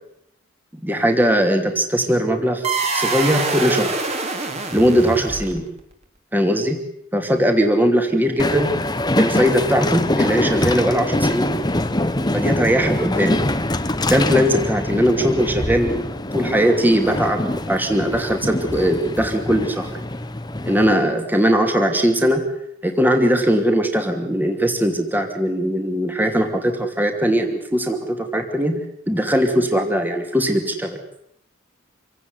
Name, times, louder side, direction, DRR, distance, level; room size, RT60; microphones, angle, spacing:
voice 1, 0.8-2.7 2.9-3.9 4.7-5.7 6.3-6.8 7.1-8.7 9.2-11.5 12.3-13.4 14.0-19.9 20.6-22.5 22.8-31.0, equal, 10° right, 4 dB, 2.7 m, -20 dB
sound 1, 2.6-5.8, right 3 dB, 35° right, 3.8 m, -25 dB
Train, 8.4-20.9, left 1 dB, 20° left, 1.3 m, -24 dB
27.0 x 17.5 x 9.8 m, 0.76 s
head